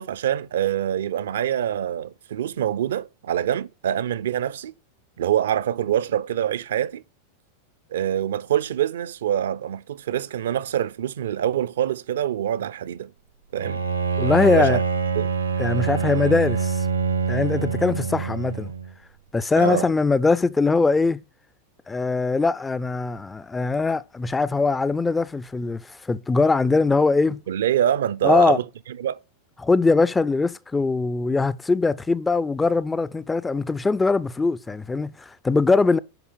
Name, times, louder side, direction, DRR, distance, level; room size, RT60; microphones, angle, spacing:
voice 1, 0.0-4.7 5.2-7.0 7.9-13.1 13.5-13.8 14.5-14.8 15.2-15.3 19.6-19.9 27.5-28.6 29.0-29.2, right 10 dB, 60° right, 0.7 m, -25 dB
Bowed string instrument, 13.6-18.9, right 5 dB, 75° right, 1.1 m, -25 dB
voice 2, 14.2-14.8 15.6-16.8 17.3-18.7 19.3-21.2 21.9-27.4 28.2-28.6 29.6-36.0, left 3 dB, 10° left, 0.5 m, -21 dB
11.0 x 5.1 x 8.2 m
figure-of-eight pair, 90°, 0 cm